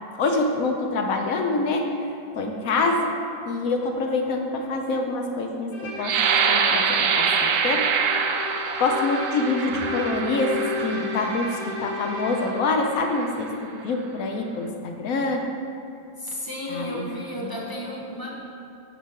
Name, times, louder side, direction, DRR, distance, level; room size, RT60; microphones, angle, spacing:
voice 1, 0.1-1.9 2.3-3.1 3.5-6.2 6.5-7.9 8.8-10.6 10.8-15.5 16.7-17.0 17.4-17.6, left 3 dB, 65° left, 3 dB, 1.0 m, -26 dB
Bowed string instrument, 5.7-12.7, left 4 dB, 80° left, 1.8 m, -34 dB
sound 1, 6.0-11.7 12.3-12.5 13.0-13.4, right 6 dB, 85° right, 0.7 m, -25 dB
voice 2, 16.2-18.3, left 1 dB, 15° left, -4 dB, 0.7 m, -33 dB
9.1 x 4.5 x 4.7 m, 2.5 s
omnidirectional pair, 2.0 m